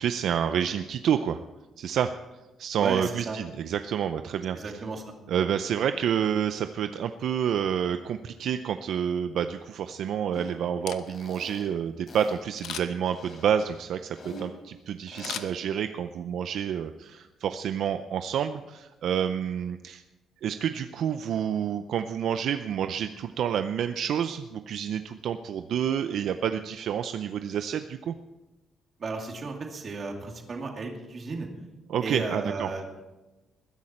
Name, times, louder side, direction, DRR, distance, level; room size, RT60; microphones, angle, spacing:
voice 1, 0.0-1.4 1.8-2.1 2.6-4.7 5.3-20.0 20.4-28.2 31.9-32.7, right 8 dB, 65° right, 9 dB, 0.5 m, -29 dB
voice 2, 2.8-3.4 4.5-5.1 29.0-31.5 32.0-33.0, right 3 dB, 35° right, 2 dB, 2.4 m, -34 dB
sound 1, 10.3-10.5 11.1-11.7 12.1-12.4 13.1-14.5 15.1-15.4, equal, 40° left, 3.8 m, -44 dB
Camera, 10.7-11.4 12.6-13.1 15.2-16.1 16.5-16.6, left 10 dB, 85° left, 0.8 m, -38 dB
20.5 x 10.5 x 4.4 m, 1.1 s
cardioid pair, 150°, 0 cm